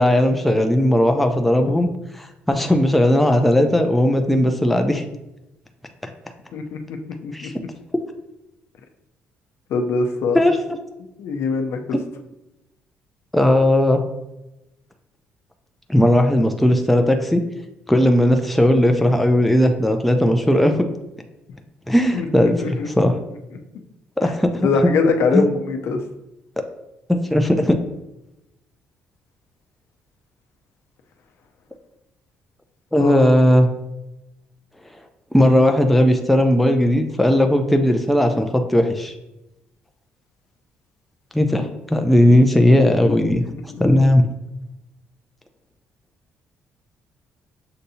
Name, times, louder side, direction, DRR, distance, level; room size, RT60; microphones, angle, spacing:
voice 1, 0.0-1.9 2.2-5.0 7.3-7.5 10.3-10.6 11.9-12.0 13.3-14.0 15.9-17.4 17.9-20.8 21.9-23.1 24.2-24.7 25.3-25.5 27.1-27.8 32.9-33.7 35.3-39.1 41.3-43.4 43.8-44.3, left 1 dB, ahead, 5 dB, 0.3 m, -17 dB
voice 2, 9.7-10.4 11.2-12.0 22.1-22.9 24.6-26.0 33.0-33.3 43.0-43.4, left 4 dB, 70° left, 4 dB, 0.6 m, -22 dB
6.6 x 2.6 x 2.7 m, 0.92 s
cardioid pair, 130°, 5 cm